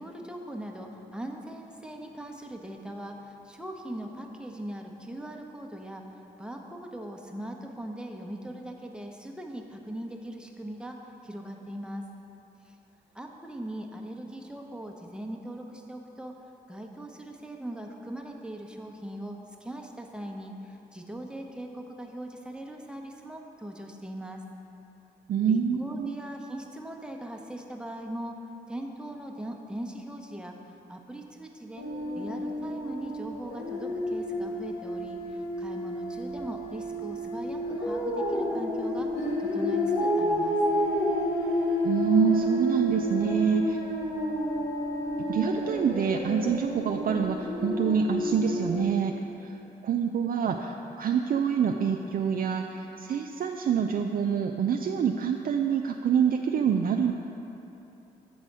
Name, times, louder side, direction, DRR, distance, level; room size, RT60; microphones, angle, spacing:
voice 1, 0.0-11.0 11.2-12.1 12.6-12.7 13.1-16.3 16.7-24.4 25.5-28.4 28.7-30.5 30.9-31.9 32.1-39.1 39.4-40.6, right 1 dB, 5° right, 2 dB, 0.9 m, -40 dB
voice 2, 25.3-26.1 41.8-43.8 45.3-49.1 49.4-49.6 49.8-57.1, right 7 dB, 50° right, 3 dB, 0.4 m, -26 dB
sound 1, 31.8-48.8, left 1 dB, 85° left, 0.9 m, -30 dB
7.7 x 4.1 x 6.0 m, 2.9 s
hypercardioid pair, 40°, 19 cm